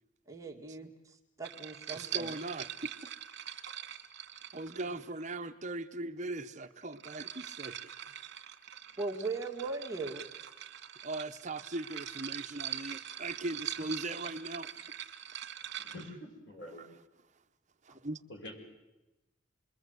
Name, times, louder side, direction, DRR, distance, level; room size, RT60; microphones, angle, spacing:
voice 1, 0.3-2.4 9.0-10.2, right 3 dB, 15° right, 1 dB, 2.0 m, -39 dB
sound 1, 1.4-5.3 6.6-16.1, right 10 dB, 55° right, 2.0 m, -43 dB
voice 2, 1.9-3.1 4.5-7.9 11.0-14.7 16.7-16.9 18.0-18.2, right 2 dB, 35° right, 9 dB, 0.9 m, -39 dB
voice 3, 15.8-16.9 18.3-18.5, left 1 dB, 65° left, 2 dB, 6.5 m, -46 dB
28.0 x 22.0 x 8.1 m, 1.0 s
head